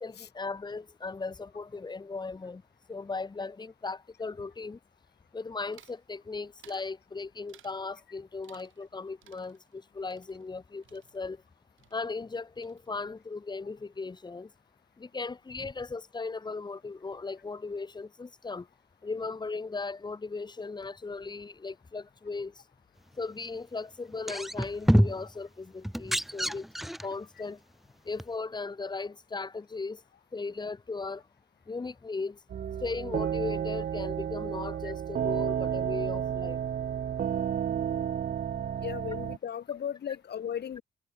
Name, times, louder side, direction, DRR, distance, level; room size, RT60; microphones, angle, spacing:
voice 1, 0.0-2.6 2.9-4.8 5.3-11.4 11.9-14.5 15.0-18.7 19.0-22.5 23.2-26.7 27.0-27.6 28.1-30.0 30.3-31.2 31.7-32.4 32.8-36.6, left 4 dB, 20° left, 1.0 m, -37 dB
sound 1, 5.7-6.1 6.6-6.9 7.5-7.9 8.4-8.9 9.2-11.5 11.8-12.4 12.6-13.2, right 12 dB, 75° right, 7.2 m, -59 dB
sound 2, 24.1-25.3 25.8-27.1 28.2-28.3, equal, ahead, 0.3 m, -26 dB
sound 3, 32.5-39.4, right 9 dB, 45° right, 0.7 m, -31 dB
voice 2, 38.8-40.8, left 9 dB, 55° left, 3.0 m, -36 dB
cardioid pair, 90°, 20 cm